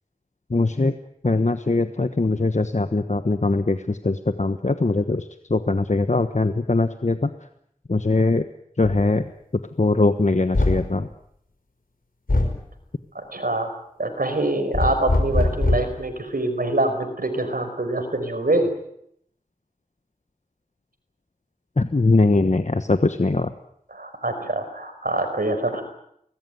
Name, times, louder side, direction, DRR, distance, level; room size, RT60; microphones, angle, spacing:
voice 1, 0.5-1.0 1.2-7.3 7.9-8.5 8.8-9.3 9.8-11.1 21.8-23.5, left 2 dB, 55° left, 9 dB, 1.2 m, -21 dB
sound 1, 8.8-9.0 10.5-10.9 12.3-12.6 14.7-16.0, left 2 dB, 80° left, 5.1 m, -21 dB
voice 2, 13.1-13.7 14.0-18.7 23.9-25.8, right 2 dB, 80° right, 7 dB, 5.2 m, -25 dB
24.0 x 20.0 x 9.4 m, 0.73 s
wide cardioid pair, 40°, 15 cm